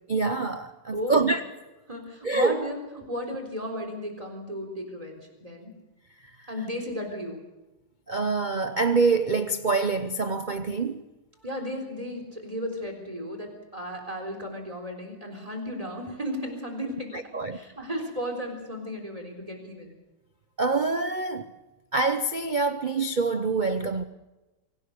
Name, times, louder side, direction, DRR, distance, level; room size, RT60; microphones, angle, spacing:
voice 1, 0.1-1.4 2.2-2.6 8.1-11.0 17.1-17.6 20.6-21.5 21.9-24.0, right 4 dB, 60° right, 0.4 m, -25 dB
voice 2, 0.9-1.3 1.9-2.8 3.0-5.7 6.5-7.4 11.4-19.9, equal, 15° right, 3.9 m, -34 dB
24.0 x 17.0 x 6.7 m
omnidirectional pair, 2.1 m